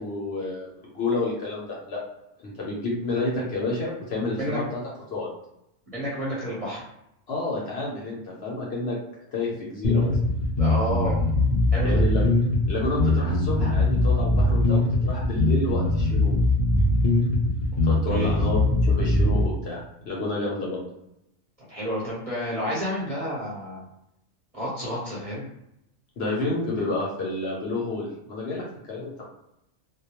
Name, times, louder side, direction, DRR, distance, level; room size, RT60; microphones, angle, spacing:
voice 1, 0.0-2.0 2.4-4.6 5.1-5.3 7.3-9.0 9.3-10.2 11.8-12.3 12.7-16.3 17.8-20.8 26.2-29.3, left 2 dB, 60° left, -4 dB, 0.8 m, -30 dB
voice 2, 5.9-6.8 10.6-11.2 11.7-12.0 18.1-18.3 21.7-23.8 24.5-25.4, equal, 35° right, -7 dB, 0.7 m, -30 dB
sound 1, 9.8-19.4, left 2 dB, 85° left, 0.3 m, -21 dB
2.2 x 2.2 x 2.9 m, 0.83 s
omnidirectional pair, 1.4 m